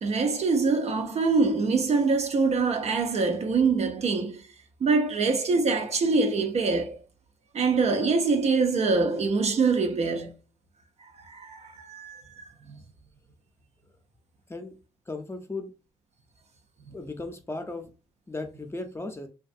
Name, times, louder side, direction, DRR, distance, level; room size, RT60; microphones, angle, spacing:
voice 1, 0.0-4.4 4.8-7.0 7.5-10.3 11.0-12.8, right 4 dB, 55° right, 0.6 m, -24 dB
voice 2, 15.1-15.7 16.9-17.9 18.3-19.3, left 2 dB, 20° left, 0.6 m, -36 dB
2.5 x 2.3 x 2.5 m
supercardioid pair, 45°, 13 cm